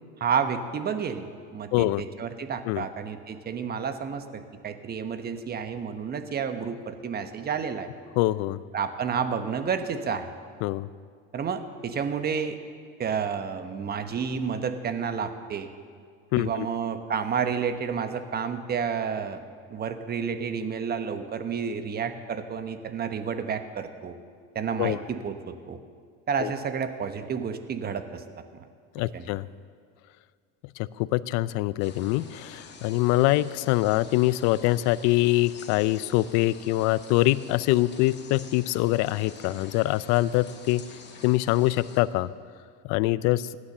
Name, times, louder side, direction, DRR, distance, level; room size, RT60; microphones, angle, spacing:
voice 1, 0.2-7.9 8.7-10.3 11.3-12.6 13.0-15.7 16.4-19.4 19.7-24.2 24.5-25.8 26.3-28.2 29.1-29.3, right 6 dB, 30° right, 9 dB, 1.1 m, -30 dB
voice 2, 1.7-2.1 2.7-2.9 8.2-8.6 10.6-10.9 16.3-16.7 24.8-25.0 26.4-26.5 28.9-29.5 30.8-40.8 41.2-42.3 42.8-43.5, left 17 dB, 65° left, 18 dB, 0.5 m, -24 dB
sound 1, 31.8-42.0, left 5 dB, 35° left, 2.2 m, -47 dB
16.0 x 9.9 x 6.8 m, 2.1 s
supercardioid pair, 100°, 31 cm